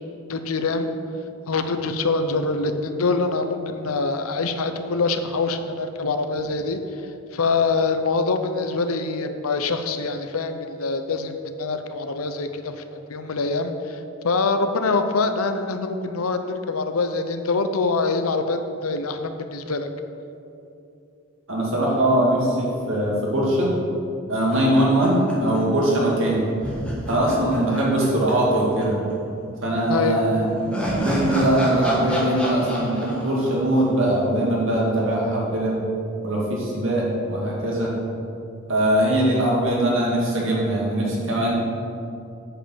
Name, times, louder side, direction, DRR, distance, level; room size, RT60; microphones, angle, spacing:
voice 1, 0.3-0.9 1.5-6.8 7.3-12.8 13.1-19.9 29.9-30.2, left 3 dB, 75° left, 8 dB, 0.7 m, -24 dB
voice 2, 21.5-23.7 24.3-26.5 27.1-29.0 29.6-35.7 36.2-37.9 38.7-41.5, right 1 dB, 60° right, -4 dB, 2.3 m, -21 dB
sound 1, 24.5-25.9 26.1-26.2 26.6-28.8 29.1-29.2 30.2-34.5, equal, 5° left, 1.4 m, -30 dB
8.6 x 5.4 x 7.0 m, 2.7 s
head